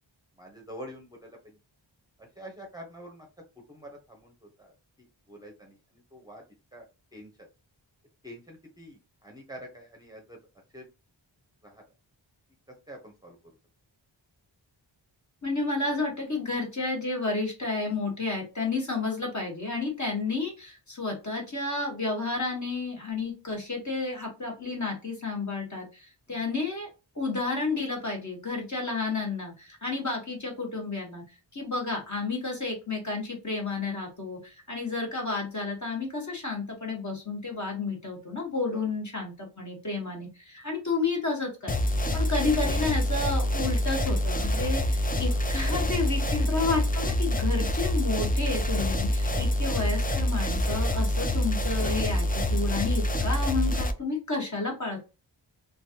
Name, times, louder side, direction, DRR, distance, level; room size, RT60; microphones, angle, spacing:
voice 1, 0.4-1.6 2.2-3.3 3.7-6.4 6.7-6.9 7.1-7.5 8.2-10.4 10.7-10.9 11.6-11.8 12.7-13.5 26.3-26.4 38.7-38.8 45.1-45.4 46.4-46.5 49.3-49.6 53.0-53.2, equal, 10° right, 0 dB, 0.8 m, -46 dB
voice 2, 15.4-26.9 27.1-31.2 31.5-55.0, left 3 dB, 35° left, 0 dB, 1.4 m, -31 dB
sound 1, 41.7-53.9, left 1 dB, 20° left, 0.4 m, -26 dB
3.1 x 2.5 x 2.8 m, 0.29 s
wide cardioid pair, 95°, 47 cm